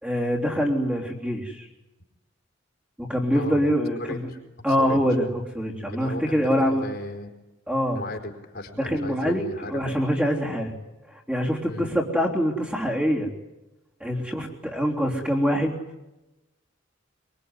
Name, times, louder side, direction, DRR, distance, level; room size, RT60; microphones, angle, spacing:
voice 1, 0.0-1.7 3.0-4.3 4.6-6.8 7.7-8.0 8.8-10.8 11.1-13.3 14.0-15.8, equal, 5° right, -1 dB, 3.6 m, -25 dB
voice 2, 3.3-3.7 4.0-4.4 4.7-5.0 5.9-7.3 7.9-10.0 10.4-10.6 11.7-11.9, left 1 dB, 55° left, 4 dB, 4.4 m, -36 dB
24.0 x 23.0 x 9.8 m, 1.0 s
head